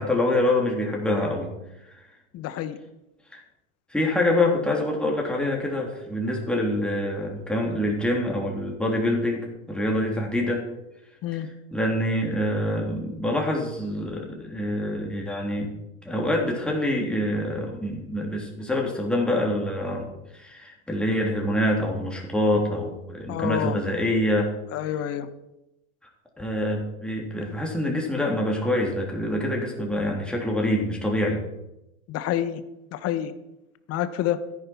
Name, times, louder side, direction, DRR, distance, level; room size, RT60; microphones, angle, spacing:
voice 1, 0.0-1.5 3.3-3.4 3.9-10.6 11.7-15.7 16.0-24.5 26.4-31.5, left 1 dB, ahead, -1 dB, 3.2 m, -26 dB
voice 2, 2.3-2.8 11.2-11.5 23.3-23.8 24.7-25.3 32.1-32.6 32.9-33.3 33.9-34.4, left 11 dB, 35° left, 12 dB, 1.1 m, -28 dB
13.5 x 10.5 x 4.4 m, 0.92 s
hypercardioid pair, 95°, 41 cm